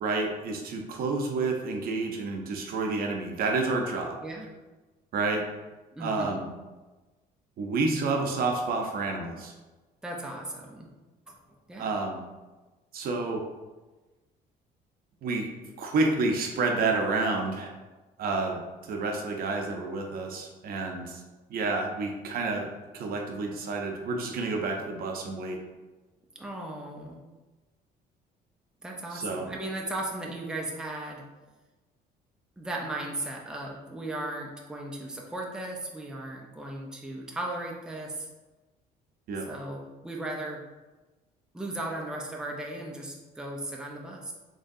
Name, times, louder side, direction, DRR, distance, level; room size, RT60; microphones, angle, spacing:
voice 1, 0.0-4.2 5.1-5.4 6.0-6.5 7.6-9.5 11.8-12.2 12.9-13.4 15.2-15.5 15.8-17.7 18.2-18.6 18.9-21.2 21.5-22.7 22.9-25.6 29.1-29.5 39.3-39.4, right 3 dB, 60° right, 2 dB, 0.7 m, -29 dB
voice 2, 5.9-6.4 10.0-10.9 11.3-11.4 11.7-12.0 26.4-27.2 28.8-31.2 32.6-38.3 39.5-40.6 41.5-44.3, right 1 dB, 5° right, -1 dB, 0.5 m, -36 dB
3.9 x 3.1 x 2.6 m, 1.2 s
cardioid pair, 110°, 17 cm